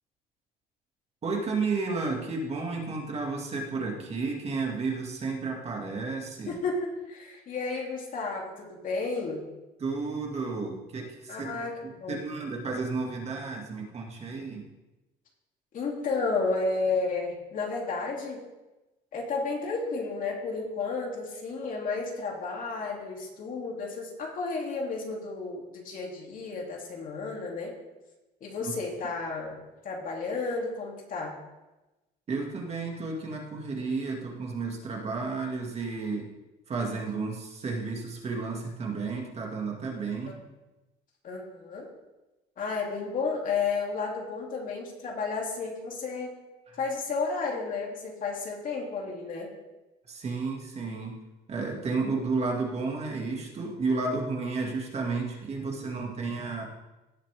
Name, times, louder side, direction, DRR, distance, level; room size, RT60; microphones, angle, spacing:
voice 1, 1.2-6.6 9.8-11.5 11.8-14.6 28.6-28.7 32.3-36.3 36.7-40.4 46.7-46.8 50.1-51.2 51.5-56.6, right 4 dB, 40° right, 0 dB, 2.3 m, -32 dB
voice 2, 6.5-9.4 11.3-12.2 15.7-18.4 19.1-27.7 28.4-31.4 40.3-40.4 41.2-41.9 42.6-46.3 46.8-49.5, left 4 dB, 55° left, -1 dB, 3.1 m, -32 dB
17.0 x 7.3 x 3.7 m, 1.0 s
cardioid pair, 110°, 17 cm